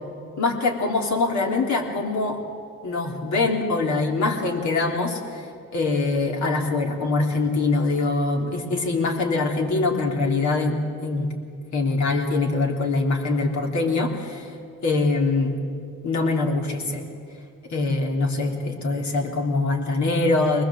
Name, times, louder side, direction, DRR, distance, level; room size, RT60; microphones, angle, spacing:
voice 1, 0.4-2.4 2.8-5.5 5.7-10.7 11.0-11.3 11.7-14.5 14.8-15.5 16.0-17.0 17.7-20.6, left 3 dB, 70° left, 2 dB, 3.3 m, -23 dB
22.5 x 20.0 x 7.6 m, 2.4 s
cardioid pair, 90°, 30 cm